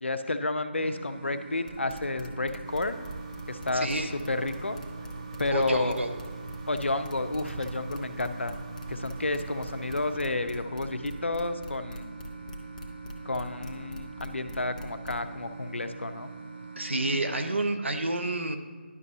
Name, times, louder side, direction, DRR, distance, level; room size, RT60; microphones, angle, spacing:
voice 1, 0.0-3.0 3.5-4.8 5.4-6.0 6.7-8.6 8.9-12.1 13.2-16.3, left 2 dB, 90° left, 9 dB, 0.6 m, -31 dB
Speaker Buzz, 0.7-17.6, right 4 dB, 70° right, 1.2 m, -44 dB
sound 1, 1.7-15.2, left 2 dB, 40° left, 0.9 m, -43 dB
sound 2, 2.6-10.2, right 4 dB, 30° right, 0.4 m, -44 dB
voice 2, 3.7-4.1 5.5-6.1 16.8-18.6, right 2 dB, 85° right, 6 dB, 0.9 m, -29 dB
11.0 x 6.1 x 2.7 m, 1.6 s
figure-of-eight pair, 155°, 6 cm